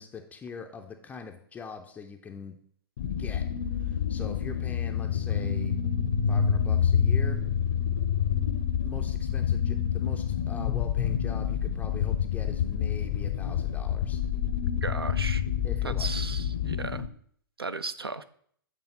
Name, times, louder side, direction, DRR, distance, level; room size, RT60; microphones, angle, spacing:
voice 1, 0.0-2.6 3.2-3.5 3.7-5.7 6.3-7.4 8.8-14.2 15.6-16.2, left 5 dB, 10° left, 4 dB, 0.4 m, -42 dB
sound 1, 3.0-17.1, left 8 dB, 50° left, 0.6 m, -28 dB
Keyboard (musical), 5.3-8.0, right 8 dB, 50° right, 0.7 m, -44 dB
voice 2, 14.8-15.4 15.8-17.0 17.6-18.2, right 4 dB, 85° right, 13 dB, 0.4 m, -35 dB
7.9 x 3.5 x 5.4 m, 0.62 s
figure-of-eight pair, 115°, 12 cm